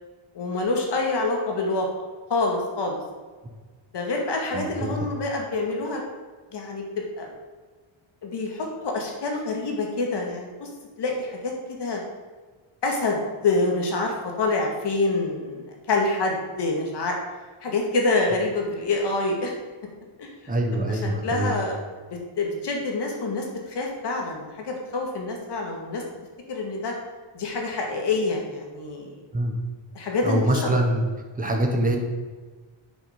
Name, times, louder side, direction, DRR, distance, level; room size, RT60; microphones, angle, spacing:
voice 1, 0.3-1.9 2.3-3.0 3.9-6.0 6.5-7.3 8.2-10.7 11.0-12.0 12.8-17.2 17.6-19.5 20.2-20.5 20.9-21.8 22.1-26.0 26.5-26.9 27.3-29.2 29.9-30.8, left 3 dB, 55° left, 0 dB, 2.0 m, -27 dB
voice 2, 4.5-4.9 20.5-21.5 29.3-29.6 30.2-31.0 31.4-32.0, right 1 dB, 15° right, 2 dB, 1.2 m, -24 dB
8.6 x 6.9 x 5.2 m, 1.4 s
wide cardioid pair, 175°, 49 cm